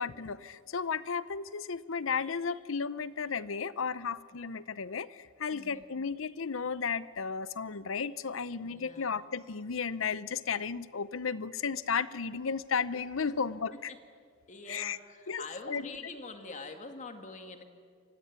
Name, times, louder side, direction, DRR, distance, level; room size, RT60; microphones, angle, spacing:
voice 1, 0.0-13.9 14.7-15.0 15.3-15.9, left 5 dB, 70° left, 17 dB, 0.7 m, -34 dB
voice 2, 5.5-5.9 8.6-9.1 13.2-13.3 13.9-14.0 14.5-17.6, left 3 dB, 40° left, 6 dB, 2.1 m, -45 dB
28.5 x 16.5 x 9.5 m, 2.2 s
head